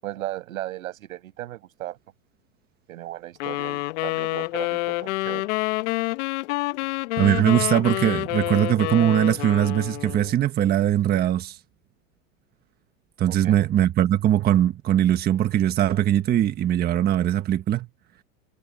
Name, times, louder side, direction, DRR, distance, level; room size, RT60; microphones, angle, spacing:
voice 1, 0.0-2.0 2.9-5.5 13.3-13.6, right 14 dB, 75° right, 6.3 m, -36 dB
sound 1, 3.4-10.4, left 21 dB, 55° left, 1.4 m, -28 dB
voice 2, 7.2-11.6 13.2-17.9, right 11 dB, 25° right, 1.4 m, -21 dB
supercardioid pair, 140°, 41 cm